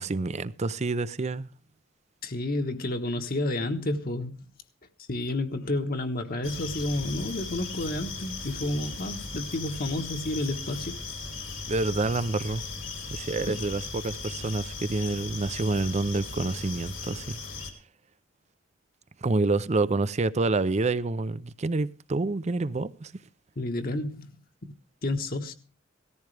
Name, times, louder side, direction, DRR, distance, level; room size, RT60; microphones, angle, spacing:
voice 1, 0.0-1.5 11.7-12.6 13.1-17.4 19.2-23.1, right 3 dB, 35° right, 0.5 m, -28 dB
voice 2, 2.2-4.4 5.1-11.0 13.5-13.6 23.6-24.3 25.0-25.5, left 1 dB, 50° left, 1.3 m, -30 dB
sound 1, 6.4-17.7, left 3 dB, 70° left, 2.7 m, -37 dB
17.5 x 14.0 x 3.3 m
head